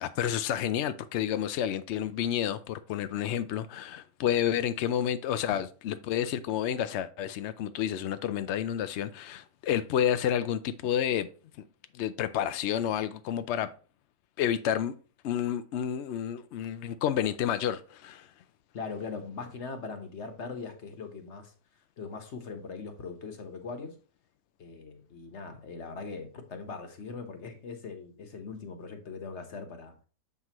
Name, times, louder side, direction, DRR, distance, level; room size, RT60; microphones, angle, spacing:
voice 1, 0.0-11.3 11.9-13.7 14.4-14.9 15.2-18.3, left 10 dB, 75° left, 0.6 m, -30 dB
voice 2, 18.7-21.5 22.0-23.9 24.6-29.9, left 4 dB, 50° left, 1.3 m, -40 dB
7.7 x 5.8 x 3.0 m
omnidirectional pair, 1.7 m